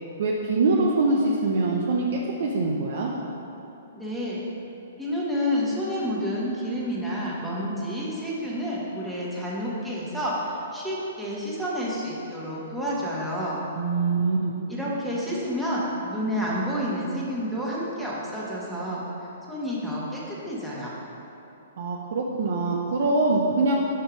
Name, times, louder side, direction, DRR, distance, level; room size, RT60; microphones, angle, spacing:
voice 1, 0.2-3.1 13.7-14.6 21.8-23.8, right 3 dB, 65° right, -2 dB, 0.6 m, -24 dB
voice 2, 3.9-4.4 5.0-13.6 14.7-20.9, equal, 5° right, -7 dB, 1.2 m, -29 dB
5.3 x 4.3 x 5.1 m, 2.9 s
hypercardioid pair, 130°, 0 cm